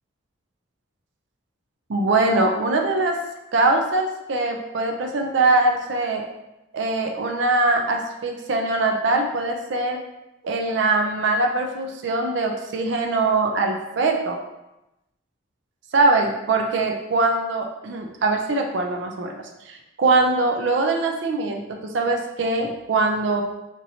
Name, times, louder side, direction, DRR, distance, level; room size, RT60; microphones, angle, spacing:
voice 1, 1.9-3.2 3.5-6.2 6.7-10.0 10.4-14.4 15.9-23.4, right 3 dB, 60° right, 3 dB, 0.4 m, -22 dB
4.4 x 2.6 x 2.8 m, 0.93 s
head